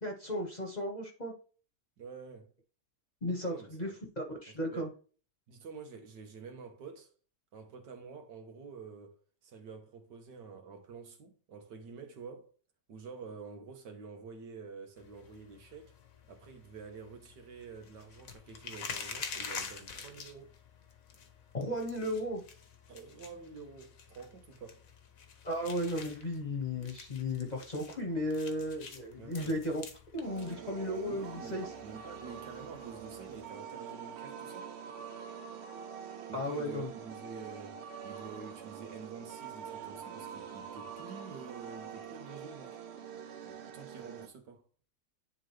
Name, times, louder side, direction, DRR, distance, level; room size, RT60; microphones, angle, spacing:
voice 1, 0.0-1.3 3.2-3.9 4.2-4.9 21.5-22.4 25.4-29.8 30.1-31.6 36.3-36.9, left 1 dB, 30° left, 1.2 m, -35 dB
voice 2, 2.0-2.5 3.4-3.9 4.5-4.9 5.5-7.1 7.5-12.5 12.9-16.0 16.3-20.5 22.9-24.9 29.2-29.6 31.1-34.7 36.3-42.8 43.4-44.7, right 5 dB, 80° right, 1.8 m, -48 dB
sound 1, 15.0-33.5, left 5 dB, 55° left, 1.3 m, -48 dB
sound 2, 30.2-44.3, right 8 dB, 50° right, 0.8 m, -45 dB
10.0 x 3.9 x 3.2 m
omnidirectional pair, 1.8 m